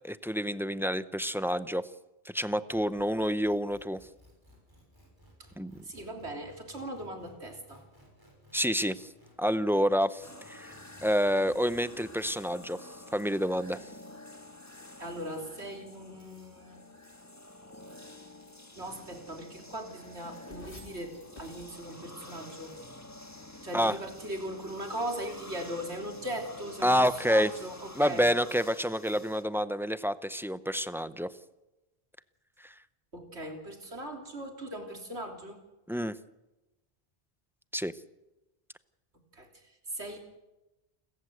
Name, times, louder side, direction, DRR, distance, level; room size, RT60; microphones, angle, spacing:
voice 1, 0.0-1.9 2.2-4.0 5.6-5.7 8.5-9.1 9.4-10.7 11.0-12.8 13.1-13.8 23.7-23.9 26.8-27.5 28.0-31.3 32.6-32.7 35.9-36.2 37.7-37.9, equal, 5° right, 13 dB, 0.5 m, -28 dB
sound 1, 2.7-12.5, equal, 20° right, 6.4 m, -58 dB
voice 2, 5.8-7.8 15.0-16.8 18.8-22.7 23.6-28.3 33.1-35.6 39.3-40.2, right 1 dB, 85° right, 3 dB, 3.7 m, -39 dB
sound 2, 10.2-29.4, left 1 dB, 15° left, 1.5 m, -49 dB
sound 3, 13.8-22.9 24.0-25.2 26.2-27.9, left 1 dB, 55° left, 3.8 m, -57 dB
29.0 x 14.5 x 7.9 m, 1.0 s
omnidirectional pair, 1.1 m